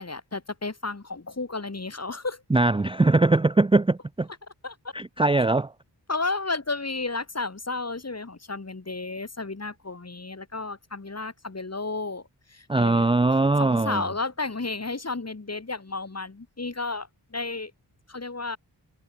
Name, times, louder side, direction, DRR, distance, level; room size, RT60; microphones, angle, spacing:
voice 1, 0.0-2.4 4.6-4.9 6.1-13.1 13.6-17.7 18.1-18.6, left 3 dB, 35° left, 2.3 m, -32 dB
voice 2, 2.5-4.3 4.9-5.7 12.7-14.0, right 2 dB, 10° right, 0.5 m, -21 dB
wide cardioid pair, 60°, 45 cm